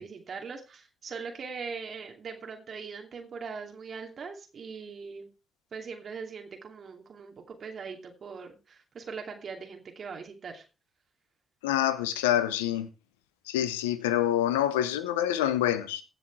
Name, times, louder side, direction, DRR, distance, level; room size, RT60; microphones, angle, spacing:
voice 1, 0.0-5.3 5.7-10.6, right 5 dB, 55° right, 2.7 m, -41 dB
voice 2, 11.6-12.9 13.5-16.0, left 11 dB, 85° left, 0.9 m, -26 dB
16.5 x 6.3 x 4.8 m
hypercardioid pair, 40°, 0 cm